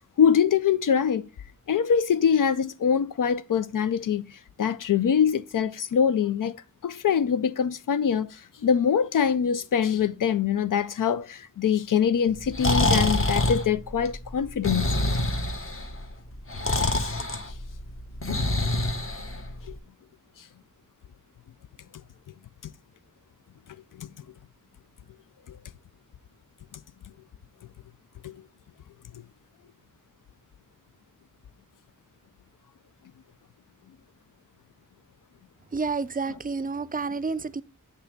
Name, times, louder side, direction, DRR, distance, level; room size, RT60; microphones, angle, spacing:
voice 1, 0.2-1.3 1.7-6.6 6.8-14.8 24.0-24.1 25.5-25.6 28.2-28.3 36.3-36.4, left 7 dB, 75° left, 0.5 m, -24 dB
Breathing, 12.3-19.7, left 1 dB, 40° left, 1.2 m, -26 dB
voice 2, 35.7-37.6, right 4 dB, 25° right, 0.4 m, -29 dB
8.2 x 3.4 x 6.5 m
wide cardioid pair, 75°, 32 cm